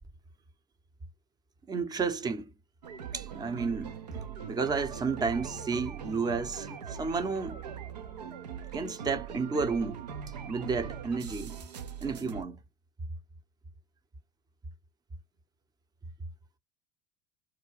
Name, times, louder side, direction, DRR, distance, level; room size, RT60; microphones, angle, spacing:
voice 1, 1.7-2.4 3.1-3.9 4.5-7.6 8.7-10.0 10.4-11.5 12.0-12.6, right 4 dB, 20° right, 0.6 m, -31 dB
sound 1, 2.8-12.4, right 7 dB, 80° right, 0.5 m, -41 dB
2.3 x 2.1 x 3.1 m
figure-of-eight pair, 70°, 20 cm